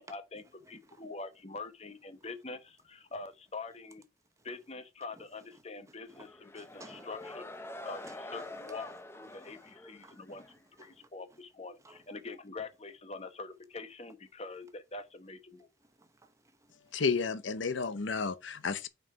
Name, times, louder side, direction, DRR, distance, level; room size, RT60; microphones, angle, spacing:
voice 1, 0.0-4.0 4.4-8.9 9.1-10.4 10.8-15.7, left 3 dB, 35° left, 0.9 m, -45 dB
voice 2, 0.6-1.0 4.4-4.5 5.2-5.3 5.5-6.3 6.5-7.3 7.8-9.0 9.3-11.4 11.8-12.1 15.8-17.0, right 2 dB, 15° right, 0.8 m, -58 dB
sound 1, 6.1-10.6, left 2 dB, 15° left, 0.5 m, -46 dB
voice 3, 16.9-18.9, left 5 dB, 75° left, 0.7 m, -31 dB
6.3 x 4.7 x 4.9 m
head